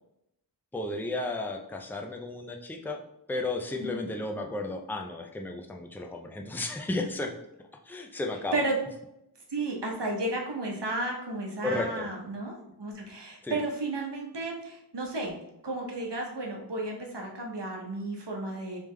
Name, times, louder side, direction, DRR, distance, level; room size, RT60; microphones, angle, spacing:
voice 1, 0.7-3.0 3.3-7.4 7.8-8.6 11.6-12.1 13.4-13.6, left 2 dB, 5° left, 3 dB, 0.5 m, -33 dB
voice 2, 9.5-15.3 15.6-18.8, right 2 dB, 80° right, 0 dB, 1.0 m, -33 dB
3.5 x 3.4 x 3.2 m, 0.82 s
wide cardioid pair, 45°, 41 cm